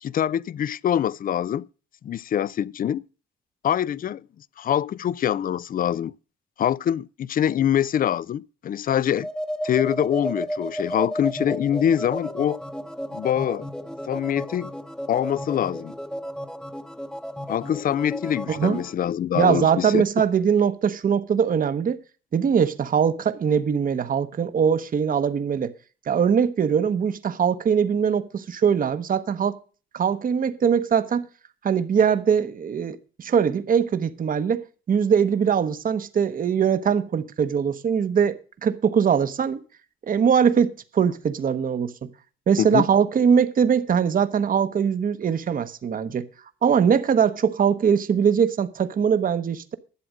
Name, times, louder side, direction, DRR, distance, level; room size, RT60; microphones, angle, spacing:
voice 1, 0.0-1.7 2.0-3.0 3.6-6.1 6.6-9.3 9.6-12.6 13.1-13.7 14.1-14.7 15.1-15.9 17.5-20.0 42.6-42.8, left 10 dB, 45° left, 0.4 m, -24 dB
sound 1, 9.1-18.9, equal, 5° left, 0.9 m, -33 dB
voice 2, 18.5-18.8 19.3-22.0 22.3-25.7 26.1-29.6 29.9-31.2 31.6-39.6 40.1-41.9 42.5-46.2 46.6-49.7, right 7 dB, 45° right, 0.9 m, -22 dB
11.5 x 7.8 x 6.4 m
cardioid pair, 90°, 20 cm